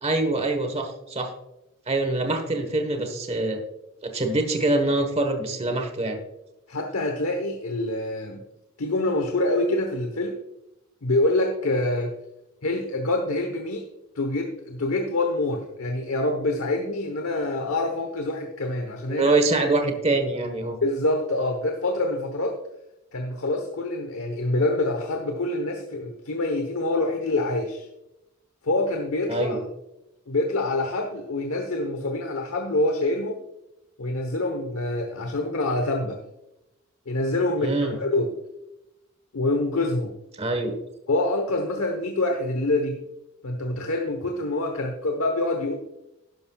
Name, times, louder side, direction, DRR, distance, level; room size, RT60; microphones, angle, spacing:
voice 1, 0.0-1.3 1.9-3.6 4.0-6.2 19.1-20.8 29.3-29.6 37.6-38.0 40.4-40.7, right 2 dB, 30° right, 5 dB, 1.3 m, -24 dB
voice 2, 6.7-8.4 8.8-10.4 11.0-12.1 12.6-13.8 14.1-19.3 20.8-22.6 23.1-27.9 28.6-29.6 30.3-33.4 34.0-36.2 37.1-38.3 39.3-40.1 41.1-43.0 43.4-45.7, left 2 dB, 85° left, 4 dB, 1.1 m, -26 dB
11.5 x 11.5 x 2.3 m, 0.93 s
head